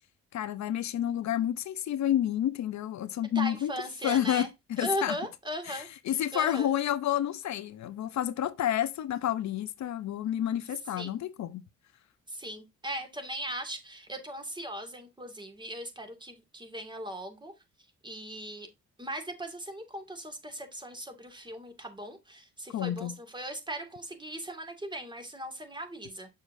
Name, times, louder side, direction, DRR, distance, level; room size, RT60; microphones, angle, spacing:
voice 1, 0.3-3.7 4.0-5.2 5.7-11.6 22.7-23.1, left 11 dB, 65° left, 0.8 m, -30 dB
voice 2, 3.2-4.5 4.8-6.7 11.0-11.2 12.3-17.5 18.0-18.7 19.0-26.3, right 1 dB, 15° right, 2.3 m, -38 dB
7.1 x 6.4 x 2.6 m
cardioid pair, 90°, 30 cm